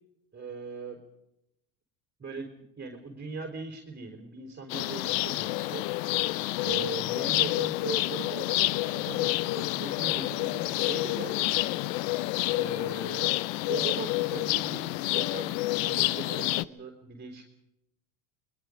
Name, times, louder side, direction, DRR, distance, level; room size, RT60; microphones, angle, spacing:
voice 1, 0.3-1.0 2.2-2.5 2.8-5.8 6.6-11.5 12.5-13.3 13.7-15.6 15.8-17.4, right 4 dB, 20° right, 3 dB, 4.4 m, -39 dB
sound 1, 4.7-16.6, left 18 dB, 80° left, 0.8 m, -28 dB
25.0 x 22.0 x 5.2 m, 0.82 s
hypercardioid pair, 90°, 49 cm